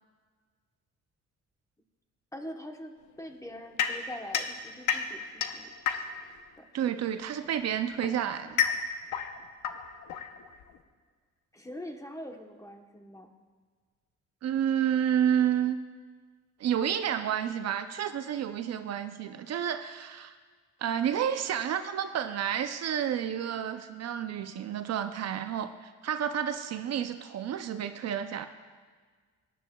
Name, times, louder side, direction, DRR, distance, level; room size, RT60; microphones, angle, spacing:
voice 1, 2.3-5.7 6.6-6.7 11.5-13.3, left 1 dB, 10° left, 4 dB, 1.0 m, -43 dB
sound 1, 3.8-6.4 7.4-10.8, left 8 dB, 85° left, 0.8 m, -32 dB
voice 2, 6.7-8.6 14.4-15.8 16.6-20.4 20.8-28.5, right 9 dB, 60° right, 9 dB, 0.5 m, -30 dB
17.5 x 10.0 x 2.3 m, 1.5 s
cardioid pair, 90°, 30 cm